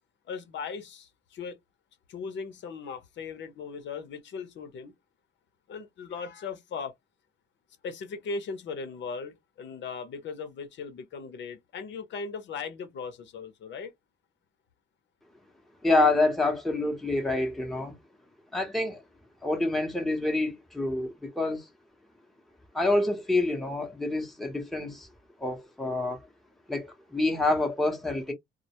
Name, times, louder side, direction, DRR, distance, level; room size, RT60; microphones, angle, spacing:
voice 1, 0.3-1.6 2.1-4.9 5.7-6.9 7.8-13.9, left 5 dB, 65° left, 0.7 m, -38 dB
voice 2, 15.8-18.0 18.5-19.0 19.4-21.6 22.7-25.1 25.4-26.2 26.7-28.3, left 2 dB, ahead, 0.7 m, -27 dB
2.1 x 2.1 x 2.8 m
cardioid pair, 90°, 20 cm